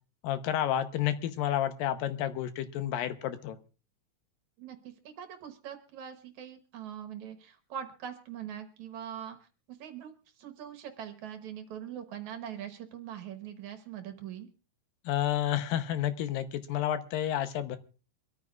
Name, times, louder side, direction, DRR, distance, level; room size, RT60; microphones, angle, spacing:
voice 1, 0.2-3.6 15.1-17.8, left 11 dB, 90° left, 10 dB, 2.6 m, -30 dB
voice 2, 4.6-14.5, right 9 dB, 65° right, 7 dB, 2.4 m, -42 dB
25.0 x 13.5 x 2.4 m, 0.35 s
omnidirectional pair, 4.0 m